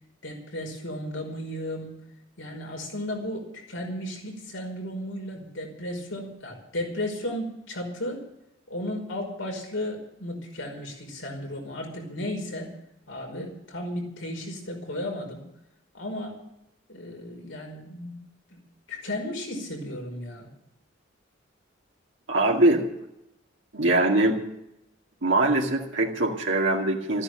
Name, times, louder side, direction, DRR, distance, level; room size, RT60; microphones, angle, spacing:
voice 1, 0.2-2.0 2.4-8.2 8.7-12.8 13.1-15.4 15.9-16.4 16.9-18.2 18.5-18.6 18.9-20.5, left 1 dB, 80° left, 1 dB, 5.3 m, -34 dB
voice 2, 22.3-22.8 23.7-24.4 25.2-27.2, right 2 dB, 70° right, -1 dB, 2.2 m, -22 dB
14.5 x 9.8 x 9.0 m, 0.82 s
head